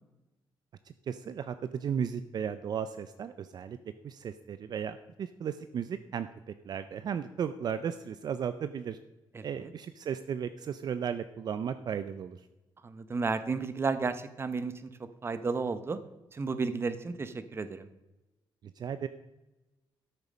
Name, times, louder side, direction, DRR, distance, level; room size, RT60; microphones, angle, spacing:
voice 1, 1.1-3.8 4.0-9.0 9.4-12.4 18.8-19.1, right 7 dB, 55° right, 11 dB, 0.5 m, -35 dB
voice 2, 9.3-9.7 12.8-14.9 15.2-16.0 16.3-17.9, right 4 dB, 30° right, 12 dB, 0.8 m, -33 dB
12.5 x 6.9 x 5.1 m, 1.0 s
cardioid pair, 125°, 8 cm